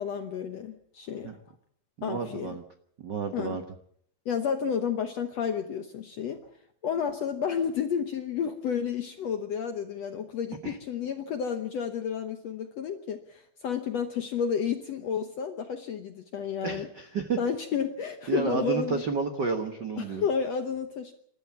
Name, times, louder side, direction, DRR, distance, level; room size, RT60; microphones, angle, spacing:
voice 1, 0.0-1.3 2.0-2.6 3.3-3.6 4.2-6.4 6.8-16.9 17.4-19.0 20.0-21.1, left 7 dB, 65° left, 7 dB, 1.7 m, -31 dB
voice 2, 2.0-2.6 3.0-3.6 10.6-10.8 16.6-17.4 18.3-20.2, right 5 dB, 75° right, 7 dB, 1.0 m, -31 dB
28.0 x 13.5 x 7.2 m, 0.67 s
omnidirectional pair, 4.2 m